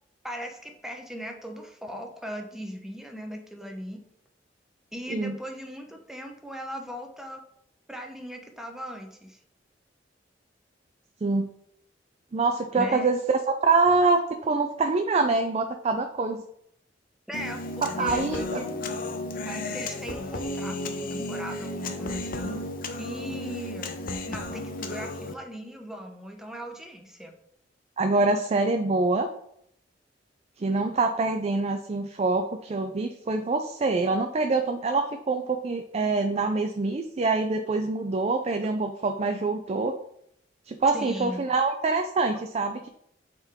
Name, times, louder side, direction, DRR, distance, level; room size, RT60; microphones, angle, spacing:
voice 1, 0.2-4.0 4.9-7.4 7.9-9.4 12.7-13.1 17.3-18.9 19.5-22.6 23.0-23.9 24.3-27.3 38.6-38.7 40.9-41.4, equal, 5° right, 2 dB, 0.8 m, -38 dB
voice 2, 12.3-16.4 17.8-18.6 28.0-29.3 30.6-40.0 40.7-42.9, right 3 dB, 35° right, 6 dB, 0.4 m, -25 dB
Human voice, 17.3-25.3, left 2 dB, 50° left, 0.6 m, -33 dB
8.0 x 3.8 x 3.6 m, 0.72 s
head